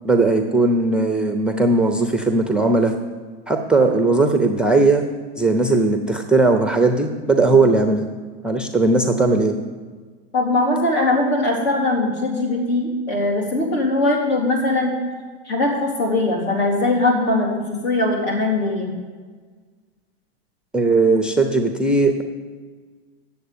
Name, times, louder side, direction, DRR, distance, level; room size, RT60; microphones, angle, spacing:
voice 1, 0.0-2.9 3.5-5.0 5.4-8.1 8.4-9.5 20.7-22.2, right 3 dB, 5° right, 4 dB, 0.5 m, -18 dB
voice 2, 10.3-14.9 15.5-18.9, left 2 dB, 65° left, -1 dB, 3.7 m, -21 dB
8.0 x 7.3 x 8.6 m, 1.5 s
hypercardioid pair, 125°, 32 cm